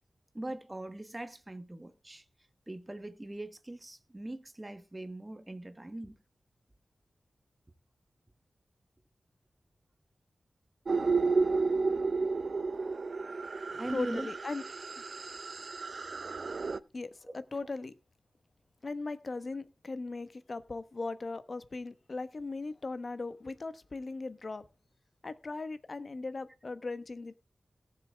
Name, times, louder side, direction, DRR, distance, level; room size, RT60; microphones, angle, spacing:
voice 1, 0.3-2.2 2.7-6.1 13.8-14.3 17.3-17.4, right 1 dB, 20° right, 1.3 m, -41 dB
sound 1, 10.9-16.8, right 4 dB, 60° right, 0.5 m, -32 dB
voice 2, 13.9-14.6 16.9-17.9 18.8-24.7 25.2-27.4, left 3 dB, 50° left, 1.1 m, -38 dB
17.5 x 6.9 x 3.5 m
wide cardioid pair, 80°, 0 cm